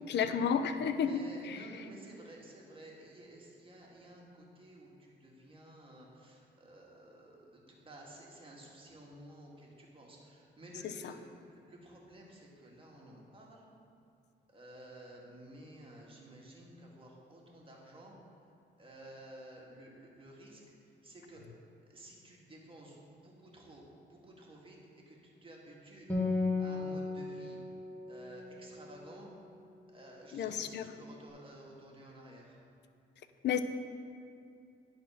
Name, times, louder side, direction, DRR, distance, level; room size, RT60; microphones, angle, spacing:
voice 1, 0.0-1.9 10.8-11.1 30.3-30.9 33.4-33.6, left 7 dB, 60° left, 10 dB, 0.6 m, -32 dB
voice 2, 0.9-13.7 14.5-18.2 18.8-20.6 21.0-21.4 21.9-23.0 23.2-23.8 24.1-24.8 25.1-26.1 26.6-27.6 28.1-29.3 29.9-32.5, right 1 dB, 25° right, -2 dB, 1.9 m, -53 dB
Acoustic guitar, 26.1-29.8, left 3 dB, 10° left, 1.8 m, -36 dB
10.5 x 4.4 x 5.7 m, 2.5 s
cardioid pair, 90°, 20 cm